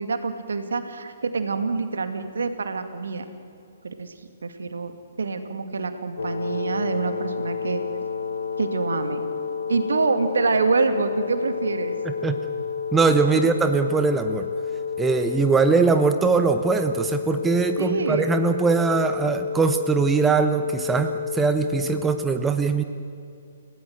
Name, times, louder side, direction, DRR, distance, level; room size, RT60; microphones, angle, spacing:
voice 1, 0.0-3.2 3.8-4.1 4.4-4.9 5.2-7.8 8.6-9.2 9.7-11.9 13.3-13.4 17.8-18.3, right 4 dB, 65° right, 8 dB, 2.3 m, -26 dB
sound 1, 6.2-22.0, left 6 dB, 70° left, 2.7 m, -30 dB
voice 2, 12.0-12.4 12.9-14.5 15.0-22.8, right 5 dB, 10° right, 8 dB, 1.0 m, -21 dB
30.0 x 18.0 x 7.9 m, 2.5 s
figure-of-eight pair, 125°, 0 cm